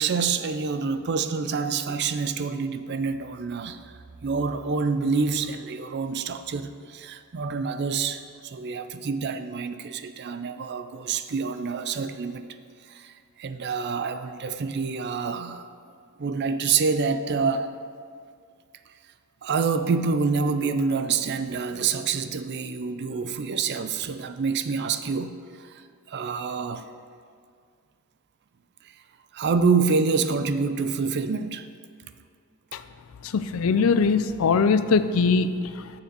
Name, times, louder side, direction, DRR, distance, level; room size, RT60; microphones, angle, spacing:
voice 1, 0.0-3.8 4.2-12.5 12.9-13.1 13.4-15.7 16.2-17.7 19.4-25.7 26.1-26.9 29.3-31.7, right 5 dB, 50° right, 10 dB, 0.4 m, -27 dB
voice 2, 33.2-35.9, left 5 dB, 65° left, 12 dB, 0.4 m, -22 dB
6.9 x 6.4 x 6.8 m, 2.2 s
head